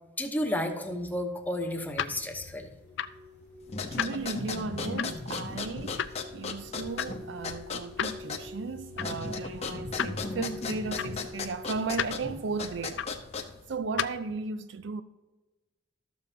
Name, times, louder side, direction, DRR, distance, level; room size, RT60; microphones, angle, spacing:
voice 1, 0.2-2.7, left 1 dB, 10° left, 0.9 m, -32 dB
sound 1, 1.4-14.4, left 9 dB, 65° left, 0.4 m, -39 dB
sound 2, 2.8-11.9, left 2 dB, 35° right, 2.3 m, -46 dB
sound 3, 3.6-13.7, left 4 dB, 35° left, 0.8 m, -37 dB
voice 2, 3.9-13.1 13.7-15.0, right 4 dB, 70° right, 0.5 m, -35 dB
13.0 x 7.0 x 2.8 m
head